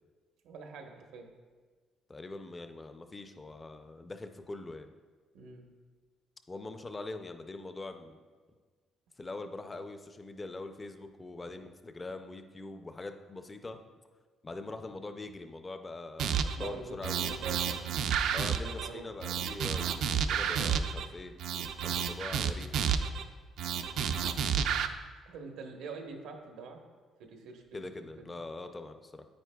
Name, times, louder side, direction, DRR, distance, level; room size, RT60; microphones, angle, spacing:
voice 1, 0.4-1.3 5.3-5.6 16.6-17.8 18.4-19.1 20.5-20.8 25.3-26.8 27.2-28.4, right 4 dB, 85° right, 3 dB, 1.0 m, -45 dB
voice 2, 2.1-4.9 6.5-8.2 9.2-13.8 14.4-17.2 18.3-21.4 21.8-22.8 27.7-29.3, left 2 dB, 15° left, 8 dB, 0.4 m, -43 dB
sound 1, 16.2-16.7 17.0-18.9 19.2-21.1 21.4-23.2 23.6-24.9, right 8 dB, 65° right, 0.4 m, -30 dB
9.2 x 9.1 x 2.3 m, 1.5 s
cardioid pair, 175°, 0 cm